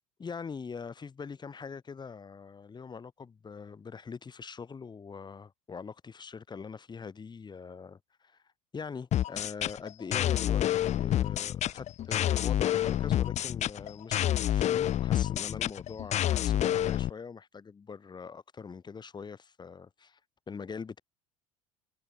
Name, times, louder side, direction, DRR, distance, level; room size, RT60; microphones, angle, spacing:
voice 1, 0.2-8.4 8.7-20.2 20.5-21.0, left 5 dB, 25° left, 6.5 m, -43 dB
sound 1, 9.1-17.1, left 12 dB, 40° left, 1.2 m, -28 dB
hypercardioid pair, 75°, 17 cm